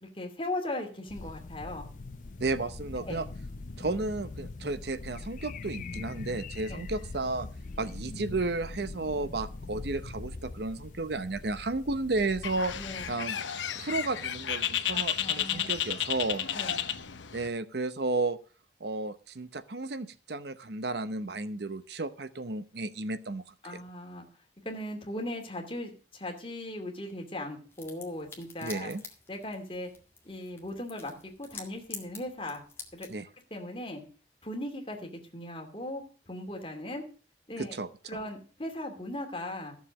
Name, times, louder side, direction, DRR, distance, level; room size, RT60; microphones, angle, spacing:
voice 1, 0.0-1.9 3.0-3.3 6.7-6.9 12.7-13.0 14.9-15.7 16.5-16.8 23.6-24.3 24.6-28.9 29.3-29.9 30.2-32.6 32.9-33.1 33.5-34.1 34.4-37.0 37.5-37.8 38.1-39.8, left 1 dB, 30° left, 2 dB, 2.6 m, -38 dB
sound 1, 1.1-13.1, left 3 dB, 45° left, 0.5 m, -42 dB
voice 2, 2.4-3.3 3.8-7.5 7.8-12.7 13.1-13.4 13.8-16.5 17.3-18.4 18.8-23.4 23.7-23.8 28.6-29.0 33.1-33.3 37.7-37.9, right 3 dB, 65° right, 13 dB, 0.8 m, -33 dB
Bird, 12.4-17.5, left 9 dB, 85° left, 0.8 m, -32 dB
sound 2, 27.7-33.2, left 4 dB, 15° left, 1.9 m, -48 dB
13.5 x 7.2 x 6.3 m, 0.38 s
head